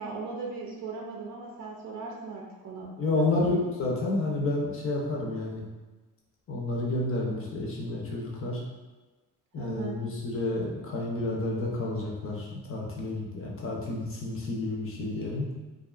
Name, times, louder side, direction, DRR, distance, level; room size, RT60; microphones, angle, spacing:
voice 1, 0.0-3.3 7.4-7.5 9.6-10.0, right 4 dB, 55° right, -2 dB, 0.4 m, -38 dB
voice 2, 3.0-3.5 3.8-5.6 6.5-8.6 9.5-15.5, left 2 dB, 40° left, -2 dB, 0.6 m, -30 dB
2.5 x 2.3 x 2.4 m, 1.2 s
cardioid pair, 110°, 35 cm